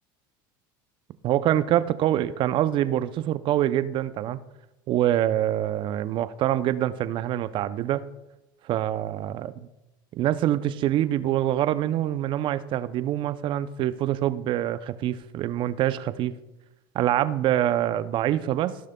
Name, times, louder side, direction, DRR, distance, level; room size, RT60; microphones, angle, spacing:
voice 1, 1.2-4.4 4.9-8.0 8.7-9.5 10.1-16.4 16.9-18.8, right 12 dB, 45° right, 14 dB, 0.5 m, -25 dB
15.5 x 6.3 x 2.2 m, 0.94 s
hypercardioid pair, 90°, 12 cm